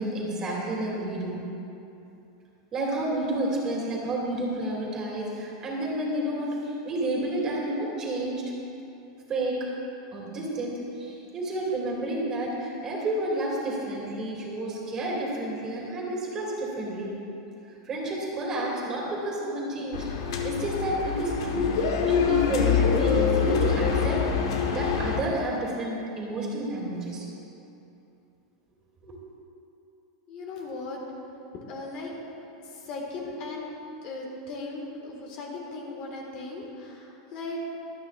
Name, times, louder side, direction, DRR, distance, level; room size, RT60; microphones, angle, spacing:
voice 1, 0.0-1.4 2.7-8.4 9.3-9.6 10.1-17.1 17.7-21.7 22.1-24.3 24.7-27.3 29.0-29.2, right 1 dB, 25° right, -3 dB, 2.5 m, -30 dB
sound 1, 19.9-25.2, left 7 dB, 75° left, 1.3 m, -25 dB
voice 2, 30.3-31.0 31.7-32.1 32.6-33.7 34.0-37.6, left 2 dB, 40° left, -1 dB, 1.7 m, -37 dB
24.0 x 9.1 x 2.5 m, 2.8 s
supercardioid pair, 155°, 2 cm